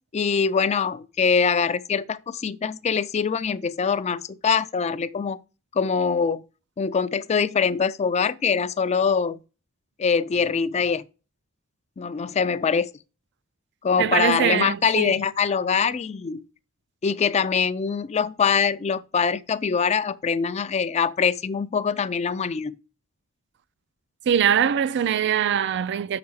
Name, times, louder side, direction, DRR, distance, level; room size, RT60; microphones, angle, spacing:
voice 1, 0.1-5.4 5.7-6.4 6.8-9.4 10.0-11.0 12.0-12.9 13.8-16.4 17.0-22.7, left 6 dB, 30° left, 0.4 m, -23 dB
voice 2, 14.0-15.2 24.3-26.2, right 8 dB, 55° right, 0.4 m, -22 dB
6.9 x 5.8 x 4.7 m
head